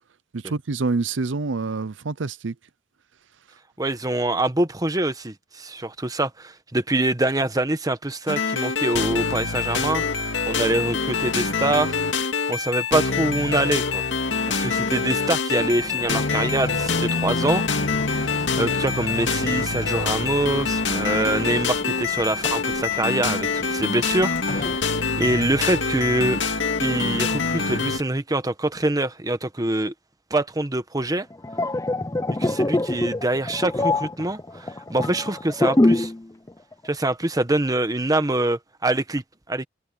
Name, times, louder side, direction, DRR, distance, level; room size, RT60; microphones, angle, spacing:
voice 1, 0.3-2.5, right 3 dB, 85° right, 0.7 m, -26 dB
voice 2, 3.8-12.0 12.5-14.0 14.5-17.6 17.9-26.4 26.8-29.9 30.3-31.3 32.4-36.1 36.8-39.7, right 2 dB, 20° right, 1.2 m, -25 dB
sound 1, 8.3-28.0, left 4 dB, 75° left, 2.4 m, -25 dB
sound 2, 15.6-24.8, left 2 dB, 45° left, 2.0 m, -37 dB
sound 3, 31.3-36.2 36.5-36.7, left 2 dB, 20° left, 0.6 m, -23 dB
head